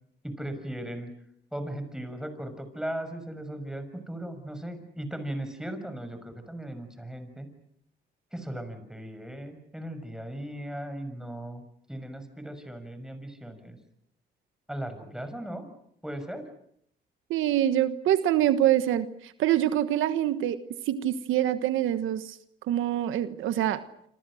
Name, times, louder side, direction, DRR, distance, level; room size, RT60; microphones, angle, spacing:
voice 1, 0.2-1.1 1.5-7.5 8.3-11.6 11.9-13.8 14.7-15.6 16.0-16.5, right 1 dB, 5° right, 9 dB, 6.3 m, -37 dB
voice 2, 17.3-22.4 22.7-23.8, right 12 dB, 85° right, 12 dB, 1.3 m, -25 dB
27.5 x 27.0 x 6.4 m, 0.71 s
cardioid pair, 90°, 20 cm